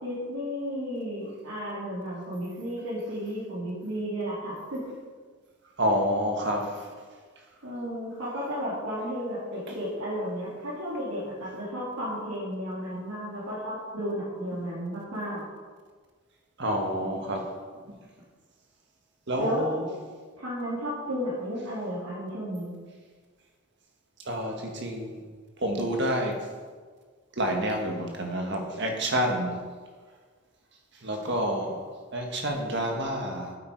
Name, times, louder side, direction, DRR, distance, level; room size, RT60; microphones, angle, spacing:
voice 1, 0.0-4.8 7.6-15.4 19.4-19.6 20.4-22.7, equal, 85° right, -9 dB, 2.8 m, -33 dB
voice 2, 5.8-6.9 9.7-9.8 16.6-17.6 19.3-19.9 24.2-25.2 25.6-26.4 27.4-29.6 31.0-31.8 32.1-33.6, equal, 55° right, 2 dB, 1.6 m, -28 dB
8.8 x 8.5 x 4.6 m, 1.5 s
head